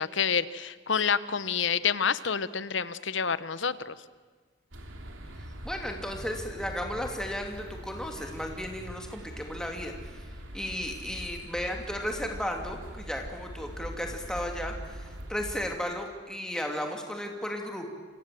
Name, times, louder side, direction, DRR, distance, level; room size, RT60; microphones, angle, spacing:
voice 1, 0.0-3.9, left 6 dB, 70° left, 16 dB, 0.9 m, -28 dB
sound 1, 4.7-15.7, equal, 80° right, 3.1 m, -42 dB
voice 2, 5.6-10.2 10.5-17.9, equal, 5° left, 2 dB, 2.8 m, -34 dB
28.0 x 25.0 x 7.8 m, 1.4 s
head